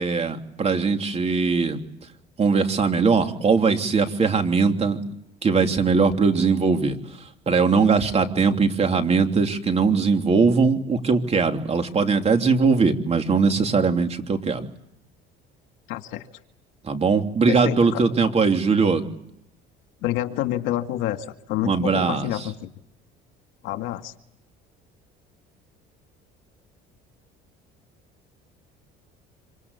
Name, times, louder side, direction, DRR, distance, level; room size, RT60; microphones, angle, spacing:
voice 1, 0.0-1.8 2.4-5.0 5.4-7.0 7.5-14.7 16.8-19.0 21.6-22.3, right 5 dB, 30° right, 6 dB, 3.1 m, -20 dB
voice 2, 15.9-16.3 17.5-18.0 20.0-22.7 23.6-24.1, left 13 dB, 85° left, 7 dB, 2.2 m, -28 dB
26.5 x 25.0 x 8.2 m, 0.76 s
cardioid pair, 115°, 20 cm